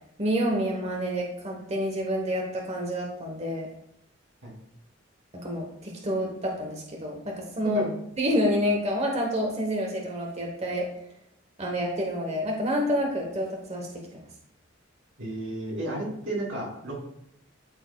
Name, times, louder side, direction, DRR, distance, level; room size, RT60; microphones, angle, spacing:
voice 1, 0.2-3.7 5.3-7.8 8.2-10.9 11.6-13.9, equal, 35° right, 0 dB, 1.0 m, -28 dB
voice 2, 15.2-16.9, right 1 dB, 85° right, -3 dB, 2.7 m, -32 dB
12.0 x 4.1 x 2.3 m, 0.74 s
head